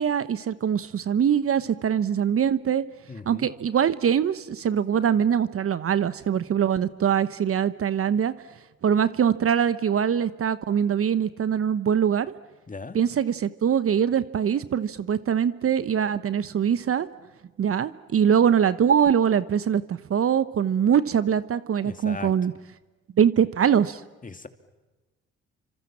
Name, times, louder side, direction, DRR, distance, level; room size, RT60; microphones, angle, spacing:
voice 1, 0.0-2.8 3.3-8.3 8.8-12.3 12.9-17.1 17.6-22.5 23.2-24.0, right 8 dB, 45° right, 15 dB, 1.0 m, -23 dB
voice 2, 3.1-3.5 12.7-13.0 21.8-22.3 24.2-24.5, left 4 dB, 25° left, 8 dB, 2.6 m, -38 dB
29.5 x 25.5 x 7.4 m, 1.2 s
hypercardioid pair, 55°, 31 cm